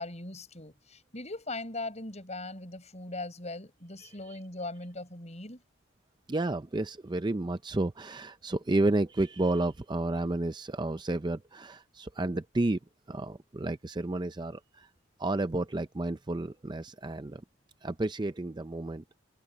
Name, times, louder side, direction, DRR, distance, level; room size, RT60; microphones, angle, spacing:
voice 1, 0.0-5.6, left 2 dB, 35° left, 6.9 m, -40 dB
voice 2, 6.3-12.8 13.1-14.9 15.2-17.4 17.8-19.0, right 2 dB, 20° right, 0.5 m, -31 dB
open air
head